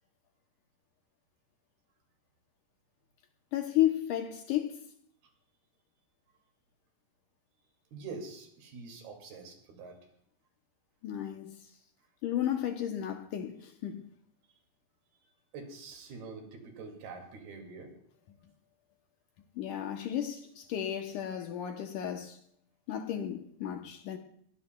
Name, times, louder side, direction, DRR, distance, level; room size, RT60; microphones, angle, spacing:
voice 1, 3.5-4.8 11.0-11.7 12.2-14.1 19.6-22.4 22.9-24.2, left 11 dB, 75° left, 2.0 m, -33 dB
voice 2, 7.9-10.0 15.5-17.9, right 4 dB, 85° right, 4.3 m, -45 dB
22.5 x 15.5 x 2.3 m
omnidirectional pair, 4.3 m